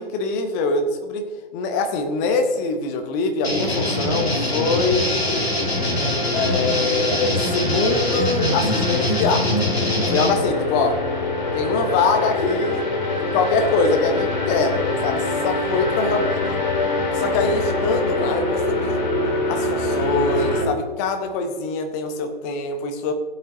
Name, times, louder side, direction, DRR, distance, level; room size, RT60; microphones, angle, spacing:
voice 1, 0.0-5.5 6.3-9.7 10.1-11.0 11.5-12.9 13.2-16.4 17.1-19.0 19.5-23.1, left 3 dB, 15° left, 6 dB, 0.7 m, -24 dB
sound 1, 3.4-10.3, left 1 dB, 75° left, 2.7 m, -23 dB
sound 2, 3.6-20.6, left 2 dB, 45° left, 1.9 m, -25 dB
16.0 x 8.3 x 2.6 m, 1.3 s
figure-of-eight pair, 125°, 31 cm